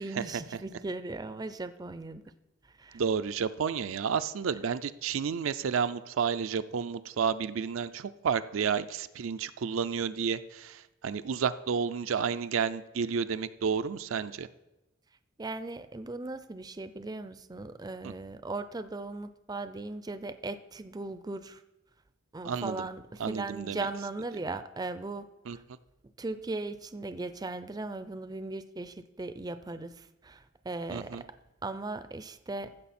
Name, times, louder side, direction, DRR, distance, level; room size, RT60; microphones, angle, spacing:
voice 1, 0.0-2.2 2.8-3.0 15.4-21.6 22.3-25.6 26.2-31.3 31.6-32.8, right 2 dB, 20° right, 11 dB, 0.4 m, -38 dB
voice 2, 2.9-14.5 18.0-18.1 22.4-22.9 23.2-23.9 25.5-25.6 30.9-31.2, right 6 dB, 80° right, 11 dB, 0.4 m, -31 dB
15.0 x 6.5 x 4.2 m, 1.0 s
head